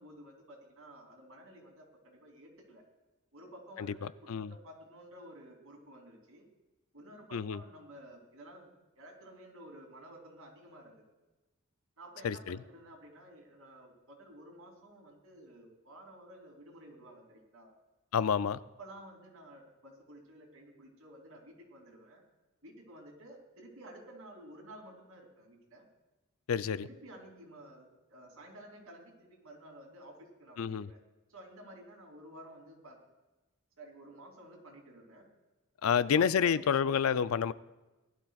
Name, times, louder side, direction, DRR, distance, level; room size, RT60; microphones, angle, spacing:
voice 1, 0.0-2.8 3.3-6.5 6.9-8.7 9.0-11.1 12.0-17.7 18.8-22.2 22.6-25.9 26.8-31.0 31.3-33.0 33.8-35.3 35.8-36.9, right 1 dB, 85° right, 2.9 m, -53 dB
voice 2, 12.2-12.6 18.1-18.6 26.5-26.8 30.6-30.9 35.8-37.5, left 7 dB, 75° left, 0.4 m, -28 dB
19.5 x 12.0 x 2.4 m
head